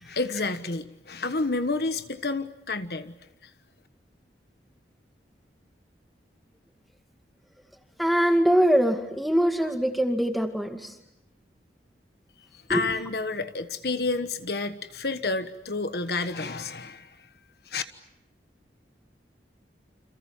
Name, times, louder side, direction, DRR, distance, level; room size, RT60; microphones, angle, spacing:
voice 1, 0.0-3.1 12.7-17.2 17.7-17.8, left 3 dB, 60° left, 10 dB, 1.4 m, -30 dB
voice 2, 8.0-10.9 12.7-12.9, equal, ahead, 5 dB, 2.2 m, -23 dB
29.0 x 27.0 x 7.3 m, 0.85 s
head